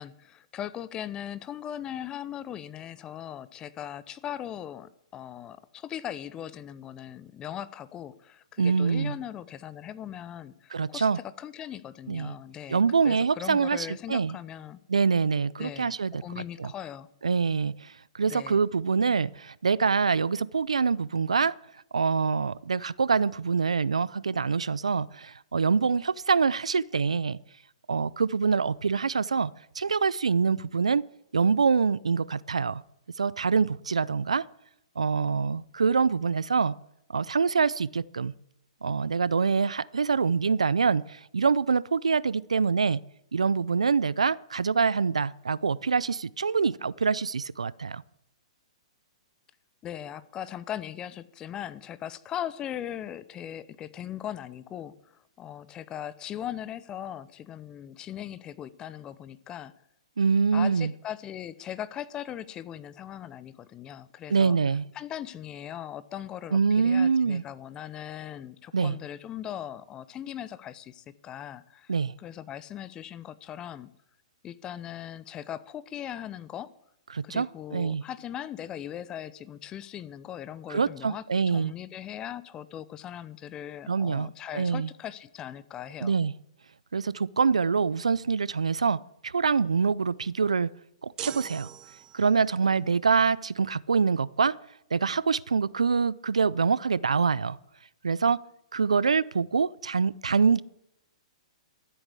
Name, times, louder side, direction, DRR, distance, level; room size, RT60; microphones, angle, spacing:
voice 1, 0.0-14.8 15.6-17.1 18.3-18.6 49.8-59.7 60.5-64.6 64.9-71.9 72.2-73.9 74.4-76.7 77.2-86.2, left 10 dB, 25° left, 16 dB, 0.7 m, -39 dB
voice 2, 8.6-9.1 10.7-11.2 12.1-12.3 12.7-14.4 14.9-16.2 16.6-16.7 17.2-21.5 21.9-27.4 27.9-31.0 31.3-32.8 33.2-34.4 35.0-36.7 37.1-38.3 38.8-43.0 43.3-48.0 60.2-60.9 64.3-64.8 66.5-67.4 68.7-69.0 71.9-72.1 77.1-78.0 80.7-81.7 83.9-84.9 86.0-86.3 86.9-90.7 91.0-91.7 92.1-94.6 94.9-97.6 98.0-98.4 98.7-100.6, right 5 dB, 85° right, 21 dB, 0.5 m, -25 dB
sound 1, 91.2-92.5, right 12 dB, 25° right, 0.5 m, -41 dB
13.5 x 8.0 x 8.3 m, 0.78 s
hypercardioid pair, 125°, 3 cm